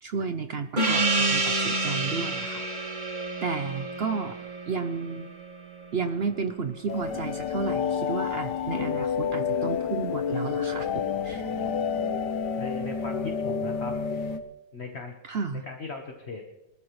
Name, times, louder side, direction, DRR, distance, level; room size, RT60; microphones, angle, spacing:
voice 1, 0.0-2.6 3.4-4.4 4.7-5.3 5.9-11.4 15.2-15.7, right 5 dB, 75° right, 9 dB, 0.5 m, -32 dB
Gong, 0.8-5.8, right 2 dB, 25° right, 1.6 m, -28 dB
sound 1, 6.9-14.4, left 6 dB, 70° left, 1.6 m, -29 dB
voice 2, 12.6-13.9 14.7-15.1 15.7-16.5, left 4 dB, 40° left, 3 dB, 1.5 m, -37 dB
24.0 x 13.5 x 3.2 m, 1.0 s
omnidirectional pair, 1.9 m